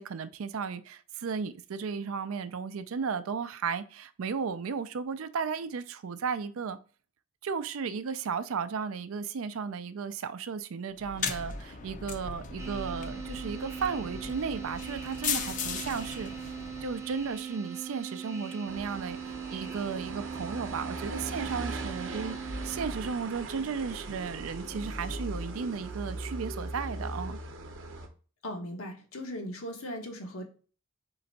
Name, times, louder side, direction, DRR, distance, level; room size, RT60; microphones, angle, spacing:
voice 1, 0.0-6.8 7.4-16.5 16.8-27.4, right 5 dB, 80° right, 0.4 m, -35 dB
sound 1, 11.0-17.4, left 5 dB, 35° left, 0.5 m, -37 dB
sound 2, 12.6-22.8, right 7 dB, 15° right, 0.6 m, -40 dB
sound 3, 18.7-28.1, right 2 dB, 60° right, 0.8 m, -39 dB
voice 2, 28.4-30.4, equal, 85° left, 1.1 m, -38 dB
3.9 x 3.3 x 4.0 m
head